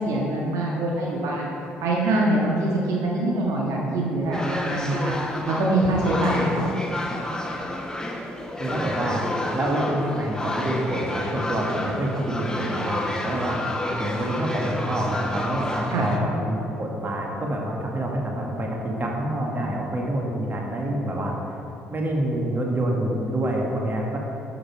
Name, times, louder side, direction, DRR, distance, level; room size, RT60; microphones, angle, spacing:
voice 1, 0.0-1.5 1.8-5.1 5.4-6.6 15.9-16.1, right 1 dB, 60° right, -3 dB, 1.6 m, -24 dB
sound 1, 4.3-16.2, left 1 dB, 10° left, 1.4 m, -30 dB
voice 2, 8.6-13.6 14.0-21.3 21.9-24.2, right 1 dB, 30° right, -1 dB, 1.9 m, -27 dB
12.0 x 7.0 x 4.7 m, 2.8 s
figure-of-eight pair, 50°, 6 cm